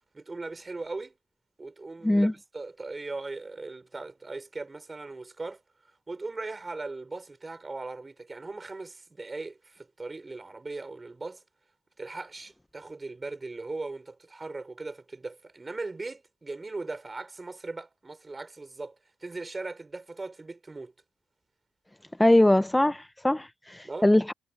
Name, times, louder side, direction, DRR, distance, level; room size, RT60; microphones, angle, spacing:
voice 1, 0.1-1.1 1.6-5.6 6.1-11.4 12.0-20.9 23.8-24.1, right 3 dB, 25° right, 6.0 m, -39 dB
voice 2, 22.2-24.3, left 1 dB, 10° left, 0.6 m, -22 dB
cardioid pair, 90°, 0 cm